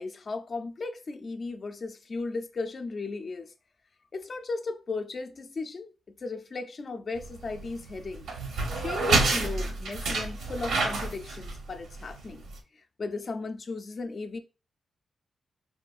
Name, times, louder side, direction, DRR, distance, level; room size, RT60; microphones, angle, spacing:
voice 1, 0.0-3.5 4.1-8.2 8.8-12.4 13.0-14.4, left 3 dB, 35° left, 0.4 m, -36 dB
sound 1, 7.2-12.6, right 3 dB, 85° right, 0.7 m, -29 dB
4.1 x 2.3 x 2.4 m
wide cardioid pair, 165°, 0 cm